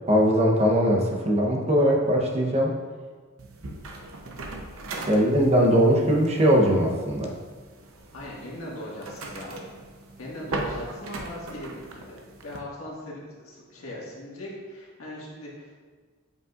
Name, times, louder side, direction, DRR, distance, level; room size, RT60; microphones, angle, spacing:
voice 1, 0.1-2.7 5.1-7.3, equal, 30° right, -1 dB, 0.8 m, -20 dB
sound 1, 3.4-12.6, right 2 dB, 80° right, 0.7 m, -39 dB
voice 2, 8.1-9.6 10.2-15.7, left 1 dB, 85° left, -5 dB, 1.7 m, -39 dB
7.7 x 5.3 x 2.4 m, 1.5 s
head